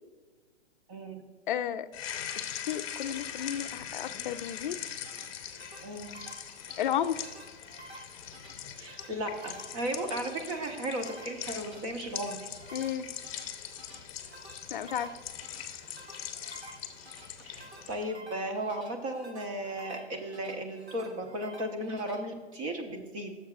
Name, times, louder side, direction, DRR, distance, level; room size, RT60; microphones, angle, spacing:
voice 1, 0.9-1.2 5.8-6.1 8.8-12.5 17.4-23.4, right 1 dB, 30° right, 4 dB, 1.1 m, -35 dB
voice 2, 1.5-1.9 2.4-4.8 6.8-7.3 12.7-13.1 14.7-15.1, left 10 dB, 50° left, 10 dB, 0.5 m, -33 dB
sound 1, 1.9-18.0, left 9 dB, 30° left, 0.8 m, -42 dB
sound 2, 4.7-22.2, right 2 dB, 70° right, 3.0 m, -52 dB
15.5 x 7.3 x 2.4 m, 1.4 s
hypercardioid pair, 155°, 33 cm